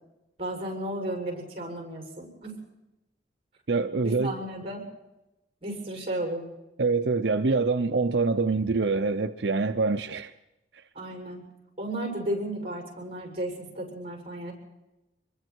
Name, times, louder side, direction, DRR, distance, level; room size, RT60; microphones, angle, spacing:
voice 1, 0.4-2.6 4.0-4.8 5.6-6.5 10.9-11.4 11.8-14.5, right 1 dB, 30° right, 7.1 m, -34 dB
voice 2, 3.7-4.3 6.8-10.3, right 4 dB, 75° right, 0.7 m, -25 dB
25.5 x 22.5 x 4.6 m
head